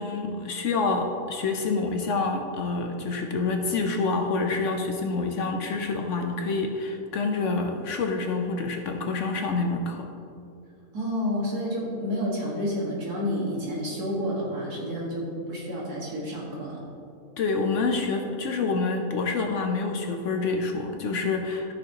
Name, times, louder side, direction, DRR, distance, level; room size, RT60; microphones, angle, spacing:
voice 1, 0.0-10.1 17.4-21.7, left 3 dB, 60° left, 3 dB, 0.9 m, -27 dB
voice 2, 10.9-16.8, equal, 80° right, -3 dB, 2.2 m, -30 dB
14.0 x 6.1 x 2.9 m, 2.6 s
omnidirectional pair, 1.6 m